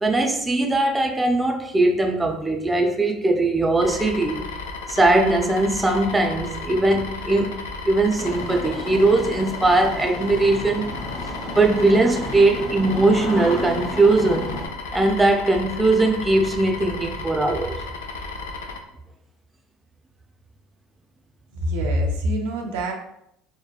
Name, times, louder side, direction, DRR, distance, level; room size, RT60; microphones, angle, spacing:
voice 1, 0.0-4.5 4.9-10.9 11.5-14.6 14.9-17.8, right 2 dB, 15° right, 0.4 m, -20 dB
sound 1, 3.8-18.8, left 3 dB, 85° left, 0.3 m, -34 dB
Engine starting, 8.2-14.7, left 2 dB, 40° left, 0.6 m, -33 dB
voice 2, 21.5-22.9, equal, 85° right, 0.5 m, -24 dB
2.7 x 2.2 x 2.3 m
hypercardioid pair, 85°, 0 cm